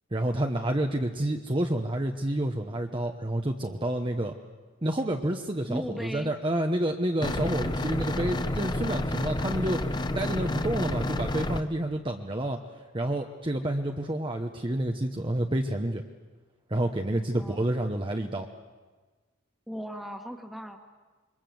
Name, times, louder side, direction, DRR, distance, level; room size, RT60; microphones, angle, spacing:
voice 1, 0.1-4.3 4.8-9.8 10.1-12.6 12.9-16.0 16.7-18.5, right 1 dB, 25° right, 3 dB, 1.0 m, -29 dB
voice 2, 5.7-6.3 17.3-17.7 19.7-20.8, equal, ahead, 5 dB, 1.7 m, -37 dB
sound 1, 7.2-11.6, left 1 dB, 20° left, 0.8 m, -30 dB
27.5 x 23.0 x 7.8 m, 1.3 s
head